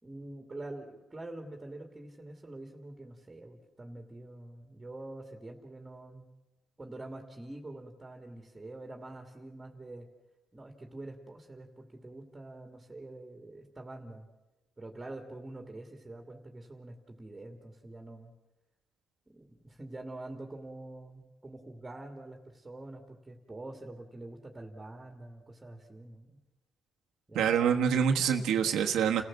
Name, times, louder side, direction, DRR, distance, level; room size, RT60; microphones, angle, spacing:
voice 1, 0.0-6.2 6.8-10.1 10.5-14.3 14.8-18.3 19.3-26.4 27.3-27.7, right 2 dB, 20° right, 3 dB, 2.6 m, -46 dB
voice 2, 27.3-29.2, right 7 dB, 85° right, 3 dB, 1.4 m, -26 dB
29.5 x 15.0 x 7.6 m, 1.1 s
cardioid pair, 90°, 0 cm